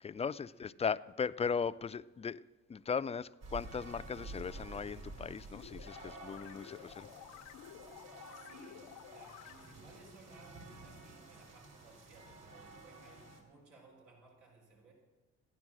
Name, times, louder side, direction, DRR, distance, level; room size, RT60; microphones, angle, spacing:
voice 1, 0.0-2.4 2.7-7.1, left 6 dB, 20° left, 0.3 m, -37 dB
sound 1, 3.4-13.4, right 3 dB, 55° right, 3.2 m, -51 dB
sound 2, 5.5-9.9, left 12 dB, 90° left, 0.7 m, -53 dB
voice 2, 8.3-14.9, right 3 dB, 90° right, 3.8 m, -60 dB
15.5 x 9.8 x 6.2 m
cardioid pair, 90°, 30 cm